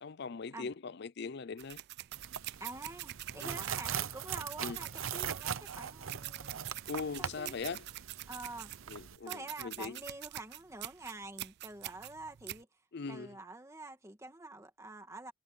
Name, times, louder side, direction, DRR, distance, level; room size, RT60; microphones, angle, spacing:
voice 1, 0.0-1.8 3.4-3.5 4.6-4.8 6.9-7.8 8.9-10.0 12.9-13.3, left 4 dB, 55° left, 0.5 m, -40 dB
sound 1, 1.6-12.6, right 16 dB, 55° right, 0.3 m, -45 dB
sound 2, 2.1-9.2, right 8 dB, 85° right, 0.8 m, -41 dB
voice 2, 2.6-7.6 8.3-8.7 9.2-12.7 13.1-15.3, right 2 dB, 15° right, 2.1 m, -47 dB
head